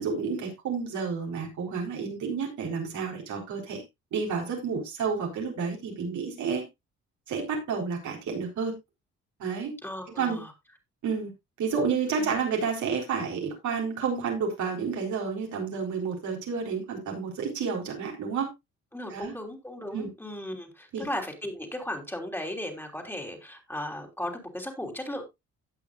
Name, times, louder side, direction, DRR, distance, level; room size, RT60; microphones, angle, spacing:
voice 1, 0.0-3.8 4.1-6.6 7.3-8.7 9.4-9.7 10.2-10.4 11.0-11.3 11.6-18.5 19.1-19.3 19.9-20.1 20.9-21.0, right 5 dB, 75° right, 1 dB, 4.1 m, -30 dB
voice 2, 9.8-10.5 12.2-12.3 18.9-25.2, left 1 dB, 5° left, 2 dB, 3.3 m, -36 dB
17.5 x 6.0 x 2.4 m, 0.21 s
cardioid pair, 90°, 30 cm